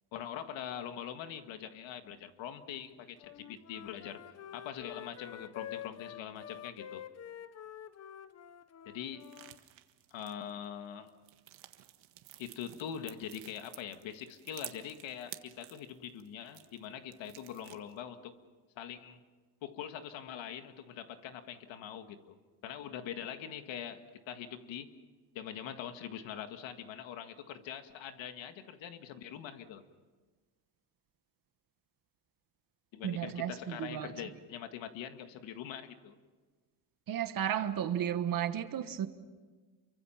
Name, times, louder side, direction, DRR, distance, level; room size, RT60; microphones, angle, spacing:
voice 1, 0.1-4.2 4.5-7.0 8.9-9.3 10.1-11.1 12.4-18.4 18.8-19.2 19.6-22.4 22.6-24.9 25.3-29.8 32.9-36.2, left 9 dB, 80° left, 8 dB, 1.9 m, -43 dB
Wind instrument woodwind instrument, 3.2-9.6, left 10 dB, 35° left, 0.7 m, -47 dB
sound 1, 9.2-10.7 11.1-16.9 17.1-18.0, right 14 dB, 80° right, 1.6 m, -52 dB
voice 2, 33.0-34.1 37.1-39.1, right 10 dB, 45° right, 10 dB, 1.4 m, -33 dB
29.0 x 24.0 x 5.8 m, 1.4 s
cardioid pair, 170°, 45 cm